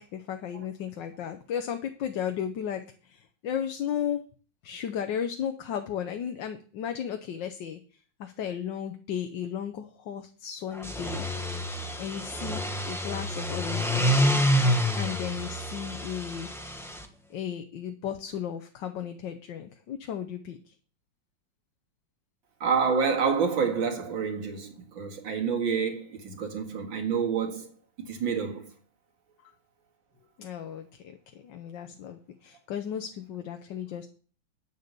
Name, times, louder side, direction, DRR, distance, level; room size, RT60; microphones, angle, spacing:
voice 1, 0.0-4.2 4.6-11.3 12.0-14.2 14.9-16.5 17.3-20.7 29.4-29.5 30.4-34.1, left 9 dB, 70° left, 1.5 m, -35 dB
sound 1, 10.8-17.0, equal, ahead, 0.6 m, -28 dB
voice 2, 22.6-27.8 28.1-28.7, right 6 dB, 75° right, 2.7 m, -28 dB
9.7 x 6.7 x 6.8 m
omnidirectional pair, 2.1 m